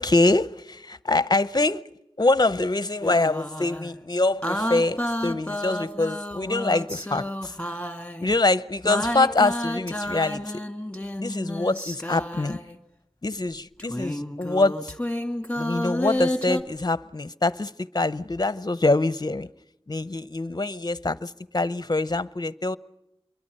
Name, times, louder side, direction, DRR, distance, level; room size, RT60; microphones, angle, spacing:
voice 1, 0.0-1.8 2.2-7.5 8.2-10.5 11.2-12.6 13.2-14.9 15.6-19.5 19.9-22.8, left 2 dB, 40° left, 0.8 m, -24 dB
sound 1, 3.0-3.9 4.4-8.3 8.8-12.8 13.8-16.6, left 1 dB, 10° left, 2.4 m, -30 dB
27.0 x 23.0 x 5.5 m
wide cardioid pair, 45°, 11 cm